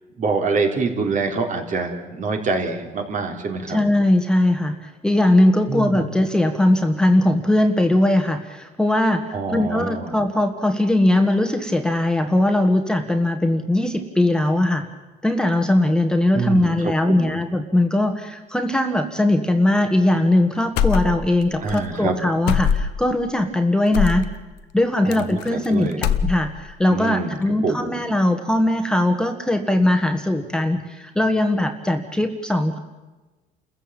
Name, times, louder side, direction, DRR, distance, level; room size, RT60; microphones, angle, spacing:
voice 1, 0.2-3.8 5.7-6.1 9.3-10.1 16.3-17.4 21.6-22.1 25.0-26.0 26.9-27.4 27.6-27.9, right 4 dB, 50° right, 4 dB, 4.0 m, -25 dB
voice 2, 3.7-14.8 15.2-24.3 24.7-32.8, left 1 dB, 5° left, 5 dB, 1.6 m, -20 dB
sound 1, 20.8-21.4 21.7-21.8 22.5-23.1 23.9-24.3 25.1-25.7 25.9-26.7, left 8 dB, 85° left, 1.1 m, -22 dB
29.0 x 14.5 x 9.0 m, 1.2 s
cardioid pair, 110°, 17 cm